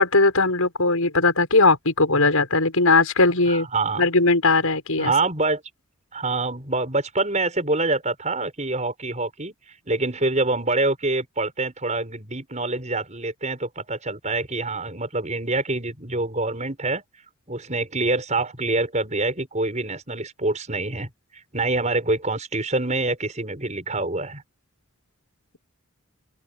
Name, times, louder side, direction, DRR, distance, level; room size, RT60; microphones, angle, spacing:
voice 1, 0.0-3.7 4.0-5.1, left 3 dB, 80° left, 6.2 m, -19 dB
voice 2, 3.5-4.1 5.0-5.6 6.1-9.5 9.9-17.0 17.5-21.1 21.5-24.4, right 2 dB, 30° right, 6.1 m, -25 dB
open air
head